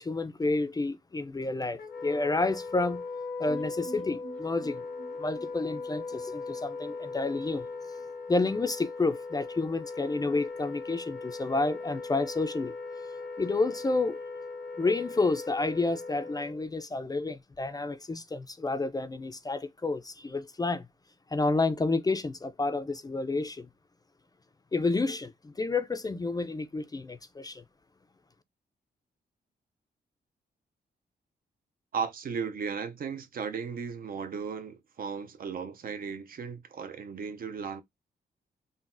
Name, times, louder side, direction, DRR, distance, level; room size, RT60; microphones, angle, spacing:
voice 1, 0.0-3.0 3.4-4.8 5.2-7.7 8.3-12.7 13.4-14.2 14.8-20.9 21.3-23.7 24.7-27.6, left 3 dB, 20° left, 0.3 m, -30 dB
Wind instrument woodwind instrument, 1.8-16.7, left 4 dB, 65° left, 0.6 m, -39 dB
sound 1, 3.5-7.3 7.6-7.7 8.0-8.1, right 4 dB, 75° right, 1.3 m, -49 dB
voice 2, 31.9-37.8, right 6 dB, 55° right, 0.4 m, -36 dB
3.8 x 2.0 x 2.5 m
cardioid pair, 65°, 18 cm